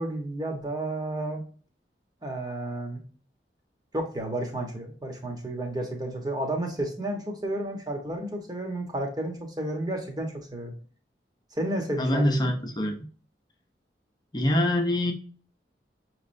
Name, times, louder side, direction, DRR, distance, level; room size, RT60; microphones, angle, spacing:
voice 1, 0.0-1.4 2.2-3.0 3.9-10.7 11.5-12.5, right 1 dB, 25° right, 2 dB, 1.1 m, -32 dB
voice 2, 12.0-13.1 14.3-15.1, left 1 dB, 25° left, 3 dB, 0.8 m, -24 dB
6.4 x 3.2 x 2.6 m, 0.42 s
head